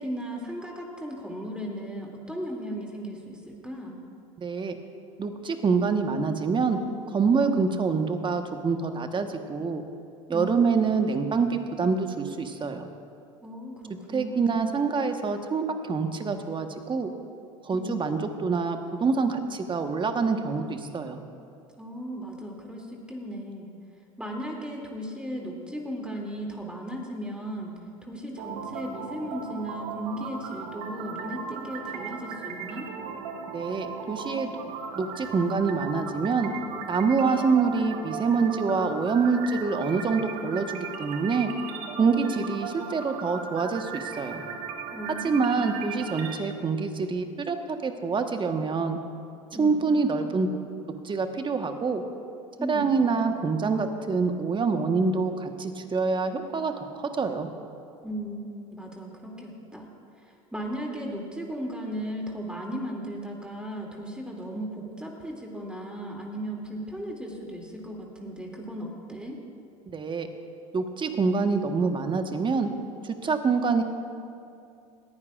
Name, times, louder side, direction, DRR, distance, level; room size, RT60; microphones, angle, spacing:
voice 1, 0.0-4.0 10.3-10.5 13.4-14.6 17.7-18.1 21.8-23.7 24.2-32.9 44.9-45.7 49.5-49.8 52.6-52.9 58.0-58.4 58.7-59.9 60.2-69.4, equal, 5° right, -1 dB, 2.6 m, -36 dB
voice 2, 4.4-4.8 5.2-6.8 7.1-9.8 10.3-12.8 14.1-17.1 17.6-21.2 33.5-34.5 35.0-36.5 36.9-41.5 42.0-44.4 45.2-49.0 49.6-50.5 51.0-52.0 52.7-57.5 69.9-70.3 70.7-72.7 73.0-73.8, right 4 dB, 30° right, 6 dB, 1.3 m, -26 dB
sound 1, 28.4-46.4, right 6 dB, 65° right, 1.3 m, -37 dB
20.5 x 14.5 x 2.5 m, 2.6 s
hypercardioid pair, 75°, 17 cm